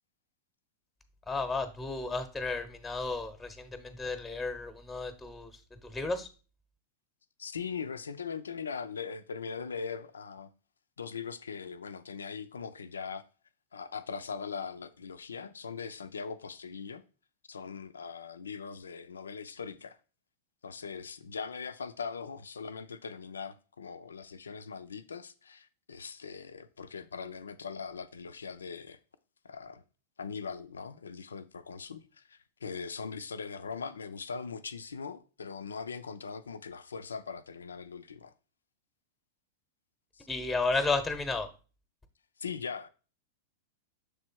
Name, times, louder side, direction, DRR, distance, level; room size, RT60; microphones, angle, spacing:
voice 1, 1.3-6.3 40.3-41.5, left 3 dB, 10° left, 0.8 m, -33 dB
voice 2, 7.4-10.5 11.0-13.2 13.7-17.0 17.5-20.0 20.6-29.0 29.4-29.8 30.2-38.3 40.1-40.3 42.4-42.9, left 5 dB, 80° left, 0.4 m, -40 dB
6.8 x 3.2 x 4.5 m
figure-of-eight pair, 95°, 0 cm